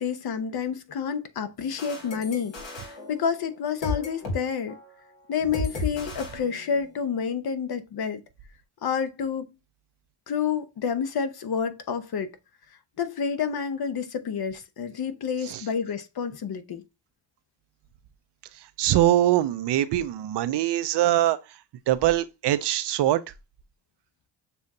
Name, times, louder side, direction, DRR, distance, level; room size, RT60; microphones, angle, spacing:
voice 1, 0.0-4.7 5.3-8.2 8.8-9.5 10.3-12.3 13.0-16.8, left 6 dB, 55° left, 0.8 m, -29 dB
sound 1, 1.6-4.4 4.7-4.9 5.5-7.1, left 3 dB, 75° left, 1.8 m, -35 dB
voice 2, 18.8-21.4 21.9-23.2, right 13 dB, 65° right, 0.6 m, -22 dB
6.8 x 2.4 x 2.7 m
cardioid pair, 65°, 44 cm